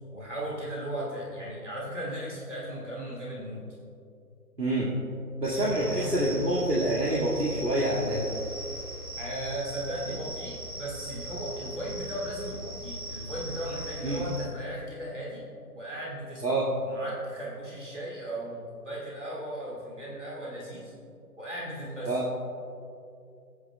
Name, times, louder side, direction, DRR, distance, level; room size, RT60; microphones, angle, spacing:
voice 1, 0.1-3.8 5.6-6.2 9.2-15.4 15.7-20.9 21.4-22.2, right 1 dB, 50° right, -6 dB, 2.0 m, -37 dB
voice 2, 4.6-4.9 5.4-8.3 14.0-14.2 16.4-16.7 22.1-22.2, right 1 dB, 80° right, -6 dB, 2.0 m, -26 dB
sound 1, 5.4-14.5, right 1 dB, 65° right, 1.6 m, -39 dB
17.5 x 9.4 x 2.3 m, 2.5 s
figure-of-eight pair, 180°, 47 cm